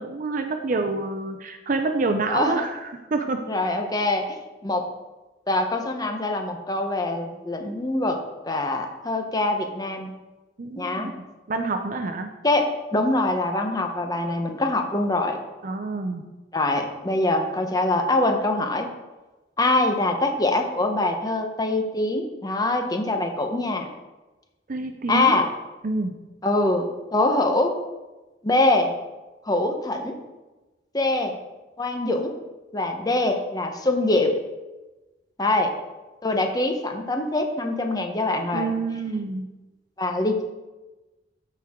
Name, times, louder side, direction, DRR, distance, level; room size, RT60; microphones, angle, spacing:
voice 1, 0.0-2.8 3.1-3.4 10.6-11.1 11.5-12.3 15.6-16.2 24.7-25.4 25.8-26.1 38.5-39.5, right 3 dB, 45° right, 6 dB, 0.5 m, -27 dB
voice 2, 2.3-2.6 3.5-4.4 4.6-4.9 5.5-8.2 8.5-10.1 10.8-11.1 12.4-15.4 16.5-18.9 19.6-23.9 25.1-25.5 26.4-27.7 28.4-28.9 29.5-30.2 30.9-31.3 31.8-32.3 32.7-34.3 35.4-35.7 36.2-38.7 40.0-40.4, left 2 dB, 20° left, 4 dB, 0.8 m, -24 dB
13.5 x 4.6 x 3.6 m, 1.1 s
head